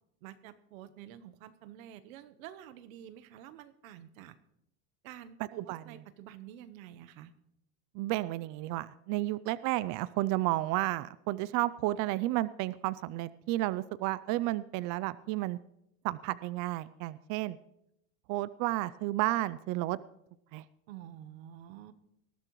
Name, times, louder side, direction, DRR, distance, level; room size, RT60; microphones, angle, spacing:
voice 1, 0.2-4.4 5.0-7.3 20.9-21.9, right 11 dB, 90° right, 12 dB, 0.9 m, -49 dB
voice 2, 5.6-6.0 7.9-15.6 16.0-17.6 18.3-20.0 20.5-20.6, right 17 dB, 50° right, 17 dB, 0.4 m, -32 dB
19.5 x 12.5 x 3.1 m, 0.79 s
supercardioid pair, 120°, 40 cm